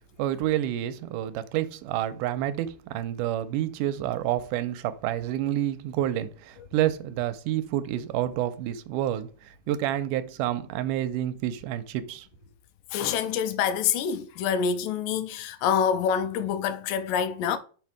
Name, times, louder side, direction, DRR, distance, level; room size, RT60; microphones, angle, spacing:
voice 1, 0.2-12.3, right 12 dB, 80° right, 2.1 m, -29 dB
voice 2, 12.9-17.6, left 7 dB, 90° left, 2.3 m, -26 dB
5.6 x 4.4 x 4.6 m
omnidirectional pair, 3.9 m